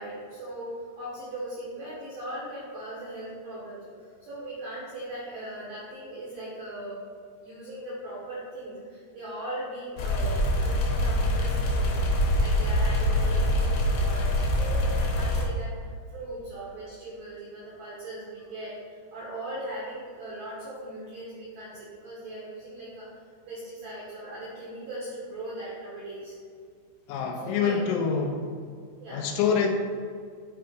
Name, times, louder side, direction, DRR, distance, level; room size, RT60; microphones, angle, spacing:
voice 1, 0.0-7.0 7.4-23.1 23.5-26.3 27.4-27.8 29.0-29.3, right 1 dB, 75° right, -7 dB, 2.1 m, -39 dB
sound 1, 10.0-15.4, left 1 dB, 70° left, 2.7 m, -24 dB
voice 2, 27.1-28.5 29.1-29.7, left 6 dB, 85° left, 2 dB, 3.0 m, -26 dB
9.7 x 3.4 x 5.1 m, 2.1 s
omnidirectional pair, 5.7 m